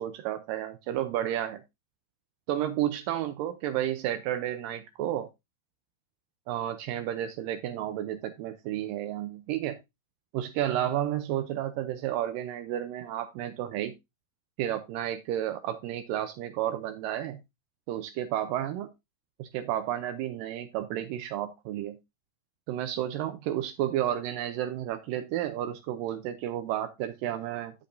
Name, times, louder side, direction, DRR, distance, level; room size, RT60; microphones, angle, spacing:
voice 1, 0.0-1.6 2.5-5.3 6.5-9.8 10.3-13.9 14.6-17.4 17.9-18.9 19.4-22.0 22.7-27.7, right 12 dB, 85° right, 2.0 m, -31 dB
8.5 x 7.8 x 2.6 m
omnidirectional pair, 4.5 m